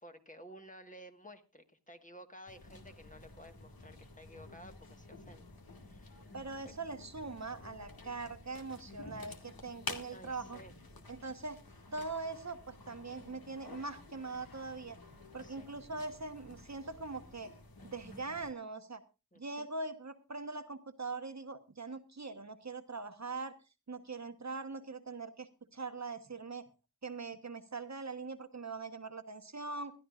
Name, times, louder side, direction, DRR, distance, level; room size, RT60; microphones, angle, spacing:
voice 1, 0.0-5.5 5.9-6.3 10.1-10.7 15.3-15.7 19.3-19.6, equal, 20° left, 6 dB, 1.6 m, -54 dB
sound 1, 2.5-18.5, left 3 dB, 70° left, 2.1 m, -51 dB
voice 2, 6.3-10.6 11.1-11.6 11.9-15.0 15.3-17.5 17.8-19.0 19.3-23.5 23.9-26.7 27.0-29.9, right 3 dB, 45° right, 8 dB, 1.2 m, -42 dB
21.0 x 13.0 x 2.5 m, 0.29 s
wide cardioid pair, 65°, 37 cm